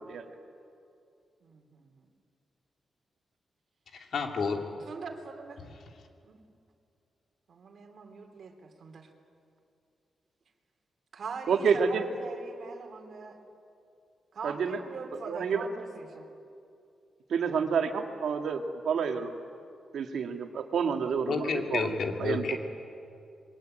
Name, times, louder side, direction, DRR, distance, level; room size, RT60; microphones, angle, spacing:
voice 1, 1.4-1.9 4.9-5.6 6.2-6.4 7.5-9.1 11.1-13.3 14.3-16.3, right 4 dB, 55° right, 3 dB, 3.3 m, -42 dB
voice 2, 3.9-4.6 21.3-22.6, left 5 dB, 60° left, 3 dB, 2.7 m, -30 dB
voice 3, 11.5-12.1 14.4-14.8 15.1-15.7 17.3-19.3 19.9-22.6, right 6 dB, 75° right, 5 dB, 2.1 m, -29 dB
26.5 x 22.5 x 9.1 m, 2.5 s
wide cardioid pair, 145°, 0 cm